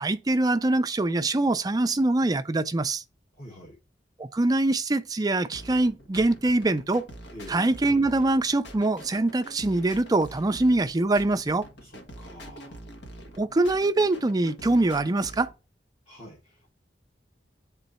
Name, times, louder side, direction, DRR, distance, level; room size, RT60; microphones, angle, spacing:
voice 1, 0.0-3.0 4.2-7.0 7.5-11.7 13.4-15.5, right 2 dB, 20° right, 0.4 m, -24 dB
voice 2, 3.4-3.8 7.3-7.6 11.8-12.8 16.1-16.7, equal, 35° left, 1.6 m, -46 dB
sound 1, 5.5-15.5, equal, 65° left, 1.3 m, -45 dB
9.0 x 3.8 x 4.1 m
head